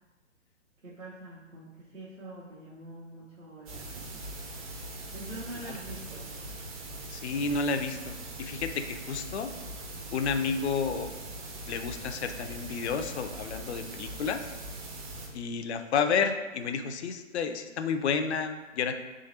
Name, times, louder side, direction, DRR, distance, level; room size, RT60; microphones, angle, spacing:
voice 1, 0.8-4.3 5.1-6.3, right 2 dB, 75° right, -9 dB, 1.3 m, -45 dB
sound 1, 3.7-15.3, right 1 dB, 30° right, 0.6 m, -41 dB
voice 2, 7.1-9.5 10.1-11.1 11.7-14.4 15.3-19.0, left 5 dB, 60° left, 8 dB, 0.5 m, -31 dB
3.7 x 3.1 x 4.3 m, 1.2 s
figure-of-eight pair, 125°, 39 cm